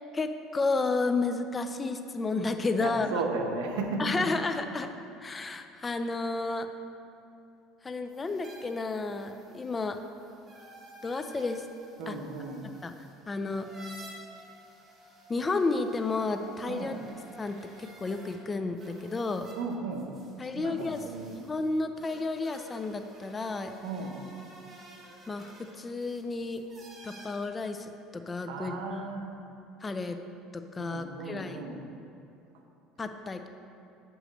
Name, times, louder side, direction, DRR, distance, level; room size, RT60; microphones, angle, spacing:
voice 1, 0.1-3.1 4.0-4.9 5.2-6.7 7.8-10.0 11.0-11.6 12.1-12.2 12.8-12.9 13.3-13.7 15.3-16.9 17.4-19.5 20.4-21.0 21.4-23.8 25.3-25.5 25.8-26.6 27.0-29.0 29.8-30.2 30.5-31.6 33.0-33.5, left 3 dB, 20° left, 8 dB, 0.5 m, -31 dB
voice 2, 2.8-4.3 12.0-12.7 16.7-17.0 19.5-20.1 20.5-21.4 23.8-24.2 28.5-29.4 30.8-31.8, right 3 dB, 85° right, 2 dB, 0.8 m, -35 dB
sound 1, 8.1-18.4 18.8-27.3, right 1 dB, 30° right, 1.5 m, -52 dB
9.1 x 3.1 x 6.4 m, 2.6 s
supercardioid pair, 110°, 0 cm